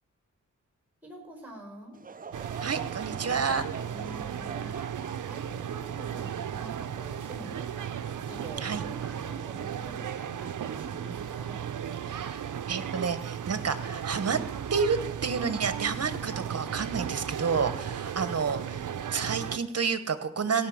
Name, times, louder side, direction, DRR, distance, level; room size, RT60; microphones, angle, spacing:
voice 1, 1.0-2.0 3.9-4.8 5.2-11.6, right 1 dB, 5° right, 3 dB, 5.0 m, -46 dB
Laughter / Crowd, 1.9-7.4 8.0-8.1 8.9-9.1, right 6 dB, 30° right, 0.4 m, -45 dB
sound 1, 2.3-19.6, right 9 dB, 70° right, 0.7 m, -35 dB
voice 2, 2.6-3.6 8.6-8.8 12.0-14.4 14.7-20.7, right 5 dB, 50° right, 12 dB, 1.2 m, -30 dB
17.0 x 5.8 x 7.2 m, 0.90 s
wide cardioid pair, 80°, 32 cm